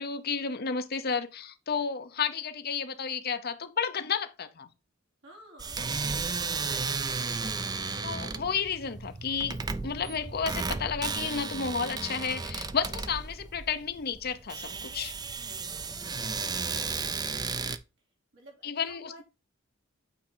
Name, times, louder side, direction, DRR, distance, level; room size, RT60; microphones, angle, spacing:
voice 1, 0.0-4.7 8.0-9.6 9.8-15.1 18.6-19.2, left 6 dB, 50° left, 0.8 m, -32 dB
voice 2, 5.2-5.9 8.1-8.6 15.5-16.2 18.3-19.2, right 1 dB, 70° right, 3.4 m, -53 dB
sound 1, 5.6-17.8, right 4 dB, 20° right, 0.5 m, -34 dB
8.8 x 4.2 x 3.9 m
head